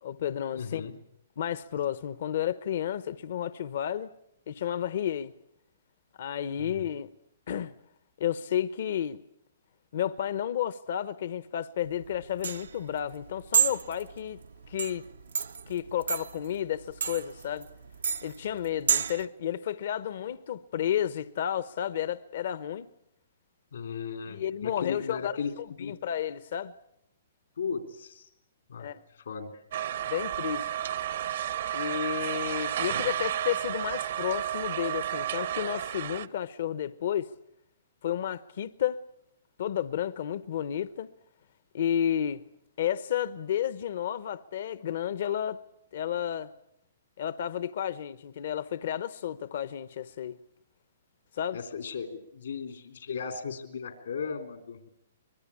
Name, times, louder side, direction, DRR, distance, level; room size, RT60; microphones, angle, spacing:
voice 1, 0.0-0.9 1.4-4.1 4.5-5.3 6.2-7.1 7.5-7.7 8.2-9.2 9.9-14.4 14.7-15.1 15.7-17.7 18.2-22.9 24.3-25.4 25.8-26.7 28.8-29.0 30.1-30.7 31.7-37.3 38.0-39.0 39.6-41.1 41.7-42.4 42.8-45.6 45.9-46.5 47.2-50.4 51.3-51.6, left 10 dB, 65° left, 0.9 m, -32 dB
voice 2, 0.5-1.0 6.6-6.9 23.7-25.9 27.6-28.3 28.7-28.9 29.1-29.6 51.5-54.9, left 6 dB, 85° left, 3.5 m, -36 dB
sound 1, 11.9-19.2, right 7 dB, 90° right, 0.9 m, -31 dB
sound 2, 29.7-36.3, right 11 dB, 70° right, 1.1 m, -32 dB
24.5 x 21.5 x 8.6 m
hypercardioid pair, 140°, 0 cm